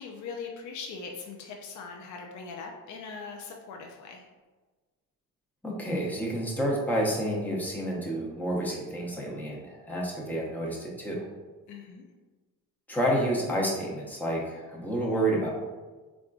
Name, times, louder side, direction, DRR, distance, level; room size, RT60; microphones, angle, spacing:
voice 1, 0.0-4.3 11.7-12.0, left 5 dB, 50° left, 1 dB, 0.5 m, -41 dB
voice 2, 5.6-11.3 12.9-15.5, right 1 dB, 5° left, -4 dB, 0.8 m, -29 dB
3.5 x 2.4 x 2.3 m, 1.3 s
supercardioid pair, 65°, 38 cm